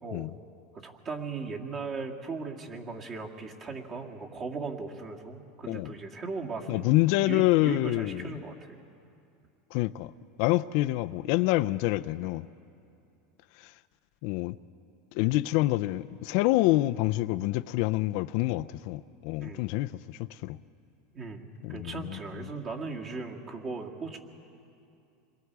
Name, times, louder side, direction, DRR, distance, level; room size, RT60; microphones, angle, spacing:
voice 1, 0.8-6.9 7.2-8.8 19.4-19.7 21.1-24.2, right 4 dB, 35° right, 2.1 m, -38 dB
voice 2, 6.7-8.3 9.7-10.1 10.4-12.5 14.2-14.6 15.1-20.6 21.6-22.5, left 18 dB, 60° left, 0.4 m, -27 dB
27.5 x 22.0 x 4.7 m
supercardioid pair, 130°, 0 cm